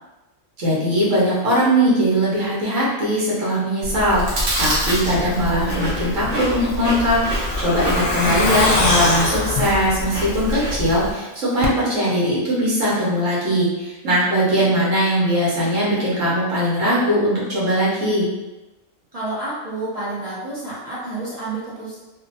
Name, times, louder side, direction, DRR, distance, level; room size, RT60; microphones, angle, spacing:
voice 1, 0.6-18.3, equal, 75° right, -7 dB, 1.3 m, -20 dB
Chewing mastication, 3.8-11.1, equal, 60° right, 0.9 m, -26 dB
Truck, 6.2-10.9 11.2-11.3 11.6-11.7, left 2 dB, 85° left, 1.0 m, -23 dB
voice 2, 7.9-8.7 19.1-22.0, right 2 dB, 40° right, -8 dB, 0.5 m, -30 dB
2.9 x 2.0 x 2.7 m, 1.1 s
omnidirectional pair, 1.4 m